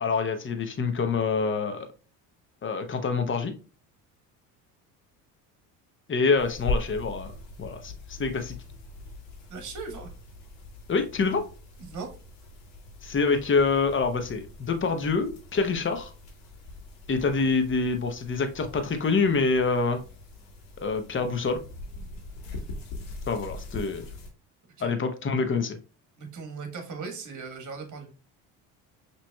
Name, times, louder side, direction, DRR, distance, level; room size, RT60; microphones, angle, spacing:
voice 1, 0.0-1.9 2.6-3.5 6.1-7.3 7.6-8.6 10.9-11.4 13.0-16.1 17.1-20.0 20.8-21.6 23.3-24.1 24.8-25.8, left 4 dB, 25° left, 7 dB, 0.8 m, -26 dB
sound 1, 6.4-24.3, left 2 dB, 70° left, 1.5 m, -41 dB
voice 2, 9.5-10.1 11.8-12.1 24.8-24.9 26.2-28.1, right 4 dB, 40° right, 5 dB, 1.5 m, -38 dB
5.6 x 3.1 x 2.3 m, 0.35 s
hypercardioid pair, 75°, 46 cm